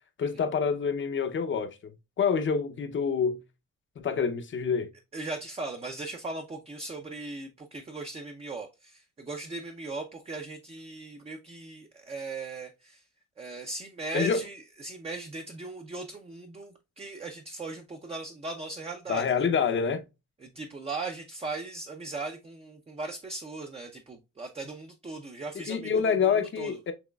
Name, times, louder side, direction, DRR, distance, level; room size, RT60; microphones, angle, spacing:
voice 1, 0.2-1.9 2.2-3.4 4.0-4.9 14.1-14.4 19.1-20.0 25.7-26.9, left 6 dB, 40° left, 0.7 m, -27 dB
voice 2, 5.1-13.0 13.4-19.5 20.4-26.8, right 3 dB, 20° right, 0.5 m, -38 dB
6.1 x 3.0 x 2.3 m
cardioid pair, 90°, 30 cm